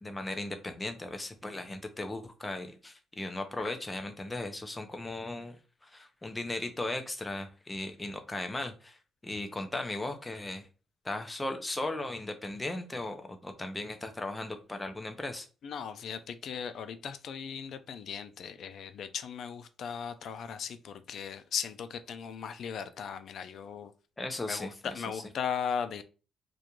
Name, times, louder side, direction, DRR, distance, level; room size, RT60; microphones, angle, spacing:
voice 1, 0.0-5.6 5.8-9.0 9.2-10.7 11.0-15.5 24.2-24.7, left 2 dB, 15° left, 0.5 m, -37 dB
voice 2, 15.6-23.9 24.4-26.0, left 7 dB, 65° left, 0.3 m, -37 dB
2.4 x 2.2 x 2.9 m
cardioid pair, 90°, 0 cm